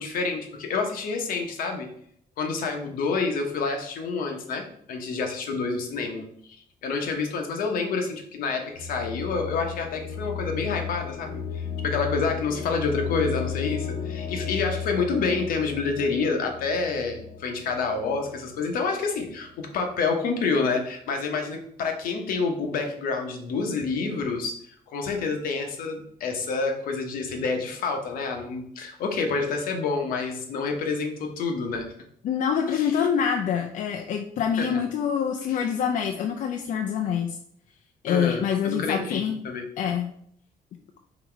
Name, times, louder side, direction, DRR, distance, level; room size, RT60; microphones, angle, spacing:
voice 1, 0.0-1.9 2.4-6.6 6.8-24.6 24.9-31.9 32.7-32.9 34.6-34.8 35.5-35.6 38.1-39.7, left 4 dB, 85° left, 3 dB, 0.9 m, -28 dB
sound 1, 8.8-18.6, left 7 dB, 50° left, 0.9 m, -34 dB
voice 2, 32.2-37.4 38.0-39.4 39.8-40.1, left 7 dB, 65° left, 3 dB, 0.4 m, -26 dB
4.0 x 2.9 x 4.4 m, 0.65 s
cardioid pair, 105°, 14 cm